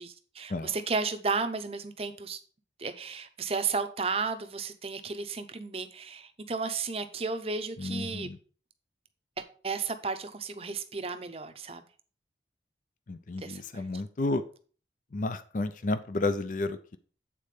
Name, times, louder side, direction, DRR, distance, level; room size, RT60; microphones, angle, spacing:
voice 1, 0.0-2.4 2.8-8.3 9.4-11.8 13.4-13.8, right 4 dB, 35° right, 0.7 m, -33 dB
voice 2, 7.8-8.4 13.1-14.4 15.1-17.0, left 2 dB, 45° left, 0.5 m, -31 dB
8.5 x 4.2 x 4.9 m
head